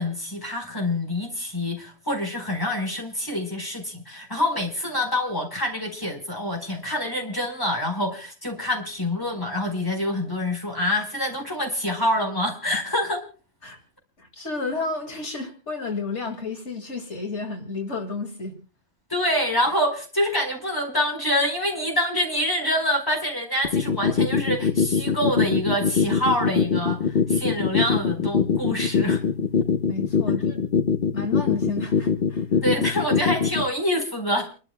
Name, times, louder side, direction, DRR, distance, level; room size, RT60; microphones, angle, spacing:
voice 1, 0.0-13.2 19.1-29.2 32.6-34.5, left 1 dB, 20° left, 2 dB, 4.5 m, -26 dB
voice 2, 14.2-18.5 29.9-30.6 31.1-32.5, left 3 dB, 80° left, 3 dB, 2.6 m, -31 dB
sound 1, 23.6-33.6, left 6 dB, 60° left, 1.2 m, -21 dB
29.5 x 12.5 x 2.3 m, 0.37 s
omnidirectional pair, 1.2 m